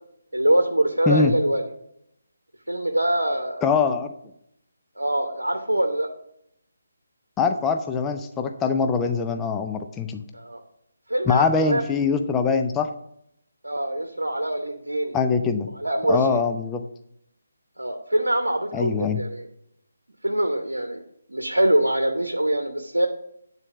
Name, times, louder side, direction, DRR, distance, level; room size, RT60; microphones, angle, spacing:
voice 1, 0.3-1.6 2.7-3.6 5.0-6.1 10.3-10.6 11.1-11.8 13.6-15.2 15.8-16.4 17.8-19.5 20.2-21.0 21.3-23.1, right 1 dB, 75° right, 4 dB, 0.9 m, -24 dB
voice 2, 3.6-4.1 7.4-10.2 11.3-12.9 15.1-15.7 16.1-16.8 18.7-19.2, left 5 dB, 10° left, 6 dB, 0.4 m, -23 dB
8.9 x 4.1 x 6.9 m, 0.76 s
figure-of-eight pair, 150°, 0 cm